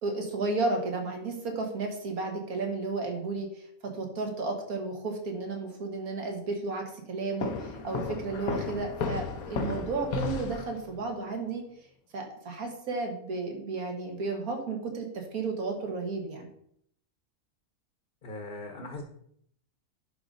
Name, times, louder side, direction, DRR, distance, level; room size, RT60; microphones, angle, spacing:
voice 1, 0.0-11.7 12.1-16.5, right 3 dB, 75° right, 3 dB, 2.0 m, -33 dB
sound 1, 7.4-11.1, left 5 dB, 80° left, 1.2 m, -34 dB
voice 2, 18.2-19.0, left 2 dB, 40° left, 4 dB, 1.0 m, -39 dB
11.0 x 5.0 x 3.9 m, 0.69 s
omnidirectional pair, 1.5 m